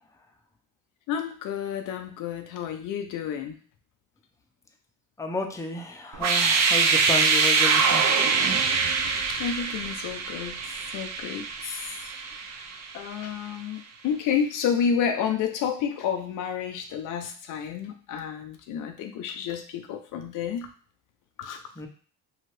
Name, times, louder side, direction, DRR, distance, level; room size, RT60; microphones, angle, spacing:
voice 1, 1.1-3.6 9.4-12.2 12.9-20.7 21.4-21.6, left 7 dB, 65° left, 6 dB, 0.5 m, -30 dB
voice 2, 5.2-8.1 21.8-21.9, left 2 dB, 10° left, 3 dB, 0.6 m, -32 dB
sound 1, 6.1-13.0, right 5 dB, 55° right, 0.6 m, -24 dB
2.7 x 2.4 x 3.2 m, 0.43 s
supercardioid pair, 70°, 33 cm